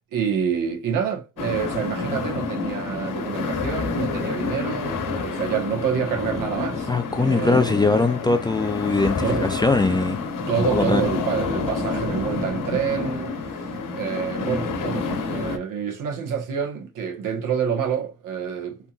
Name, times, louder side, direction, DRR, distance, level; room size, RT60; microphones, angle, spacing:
voice 1, 0.1-6.9 7.1-7.7 9.2-9.5 10.5-18.8, right 7 dB, 70° right, 1.3 m, -27 dB
sound 1, 1.4-15.6, left 4 dB, 70° left, 1.1 m, -28 dB
voice 2, 6.9-10.2 10.7-11.0, left 3 dB, 15° left, 0.4 m, -21 dB
3.7 x 2.9 x 2.5 m
cardioid pair, 105°, 33 cm